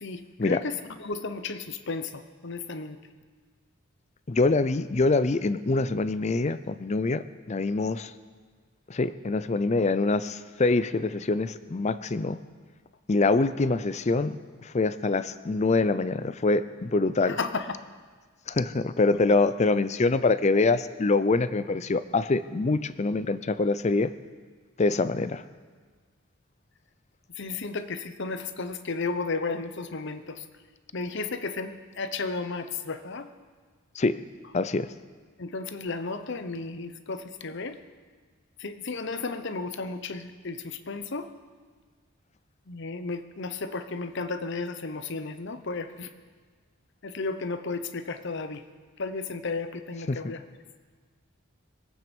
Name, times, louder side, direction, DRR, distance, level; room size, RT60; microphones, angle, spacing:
voice 1, 1.0-2.1 2.4-3.0 17.3-17.6 27.4-30.2 30.9-33.3 35.4-37.7 38.6-41.3 42.7-46.1 47.0-48.6 49.0-50.4, left 3 dB, 55° left, 10 dB, 0.9 m, -33 dB
voice 2, 4.3-8.1 8.9-12.4 13.1-14.4 14.6-17.4 18.5-24.1 24.8-25.4 34.0-34.2 34.5-34.9 50.1-50.2, left 3 dB, 30° left, 14 dB, 0.5 m, -25 dB
23.0 x 8.8 x 5.3 m, 1.5 s
head